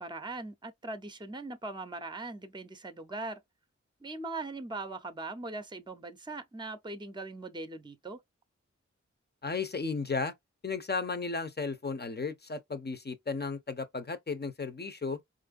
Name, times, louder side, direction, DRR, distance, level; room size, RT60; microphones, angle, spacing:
voice 1, 0.0-3.4 4.0-8.2, right 2 dB, 15° right, 0.6 m, -40 dB
voice 2, 9.4-10.3 10.6-15.2, left 4 dB, 35° left, 0.7 m, -34 dB
4.3 x 2.6 x 2.4 m
wide cardioid pair, 60°, 29 cm